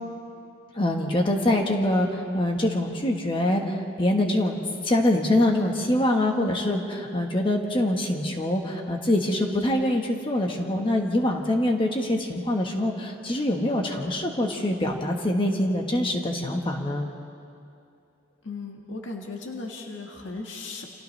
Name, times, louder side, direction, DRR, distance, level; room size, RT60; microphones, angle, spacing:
voice 1, 0.7-4.6 4.8-17.1, left 1 dB, 25° left, 1 dB, 1.4 m, -24 dB
voice 2, 18.4-20.9, left 3 dB, 70° left, 0 dB, 1.7 m, -36 dB
30.0 x 27.0 x 3.3 m, 2.5 s
head